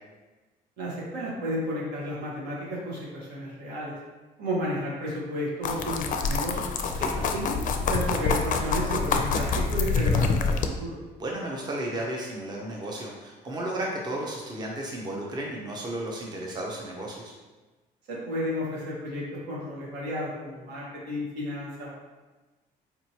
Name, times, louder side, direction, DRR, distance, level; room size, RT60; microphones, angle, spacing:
voice 1, 0.8-4.0 4.4-6.6 7.1-11.0 18.1-21.9, equal, 80° right, -5 dB, 1.4 m, -32 dB
sound 1, 5.6-10.7, left 4 dB, 50° left, 0.4 m, -26 dB
voice 2, 11.2-17.3, right 1 dB, 25° right, -2 dB, 0.6 m, -33 dB
4.4 x 2.9 x 2.8 m, 1.2 s
cardioid pair, 110°, 17 cm